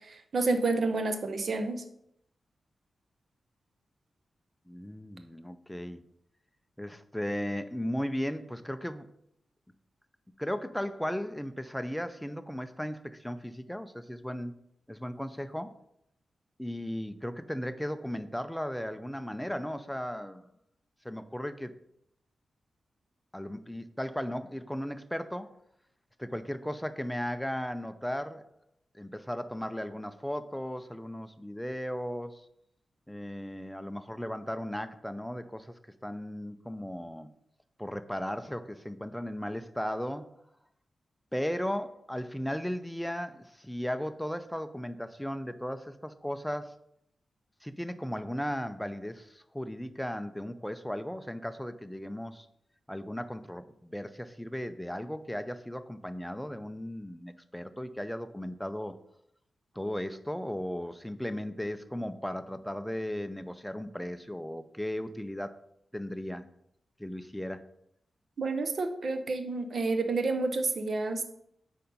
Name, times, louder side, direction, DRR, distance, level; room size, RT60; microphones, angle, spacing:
voice 1, 0.1-1.8 68.4-71.2, right 3 dB, 60° right, 8 dB, 0.8 m, -29 dB
voice 2, 4.7-6.0 6.8-9.1 10.4-14.5 14.9-15.7 16.6-20.5 21.0-21.7 23.3-25.5 26.2-28.5 28.9-32.4 33.1-35.7 36.0-37.3 37.8-40.3 41.3-46.7 47.6-52.5 52.9-58.9 59.7-65.6 65.9-66.5 67.0-67.6, equal, 5° left, 10 dB, 0.4 m, -36 dB
5.1 x 4.3 x 5.3 m, 0.76 s
cardioid pair, 85°, 0 cm